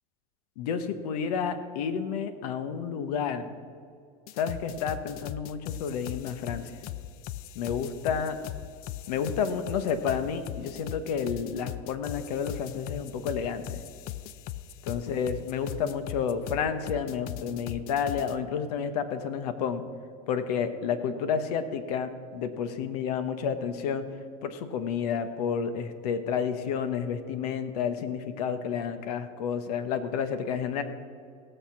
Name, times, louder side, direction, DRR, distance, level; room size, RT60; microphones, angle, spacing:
voice 1, 0.6-3.6 4.4-6.7 7.5-8.4 9.1-13.8 14.8-19.8 20.3-24.1 24.4-30.8, left 7 dB, 85° left, 11 dB, 1.1 m, -30 dB
sound 1, 4.3-18.3, left 13 dB, 50° left, 0.5 m, -39 dB
17.5 x 6.7 x 5.9 m, 2.3 s
supercardioid pair, 130°, 19 cm